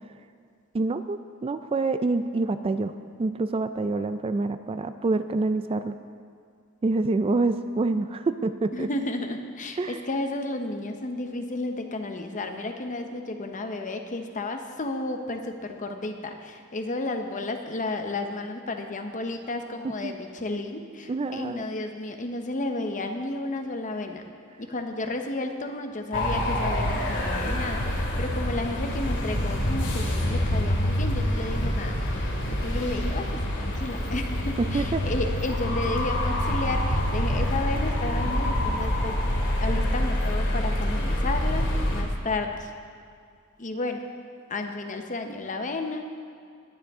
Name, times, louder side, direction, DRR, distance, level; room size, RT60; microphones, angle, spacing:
voice 1, 0.7-2.9 3.2-6.0 6.8-8.9 9.8-10.0 20.0-20.1 21.1-21.7 34.7-35.1, right 3 dB, 25° right, 10 dB, 0.3 m, -26 dB
voice 2, 8.7-24.2 24.6-39.2 39.6-42.7 43.6-44.0 44.5-46.0, left 2 dB, 35° left, 5 dB, 0.9 m, -32 dB
sound 1, 26.1-42.0, left 1 dB, 60° left, 2.3 m, -26 dB
20.0 x 9.6 x 3.7 m, 2.2 s
head